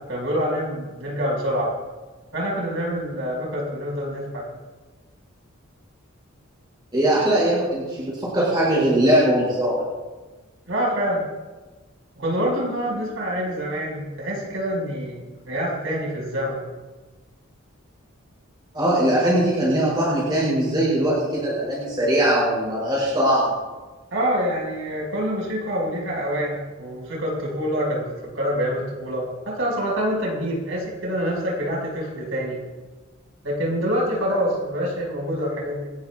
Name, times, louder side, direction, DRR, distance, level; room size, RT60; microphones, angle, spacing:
voice 1, 0.0-1.7 2.3-4.5 10.7-11.2 12.2-15.2 15.5-16.6 24.1-32.6 33.4-35.9, equal, 70° right, -2 dB, 5.6 m, -26 dB
voice 2, 6.9-9.8 18.7-23.5, right 1 dB, 20° right, -8 dB, 6.1 m, -20 dB
29.0 x 13.0 x 2.4 m, 1.3 s
head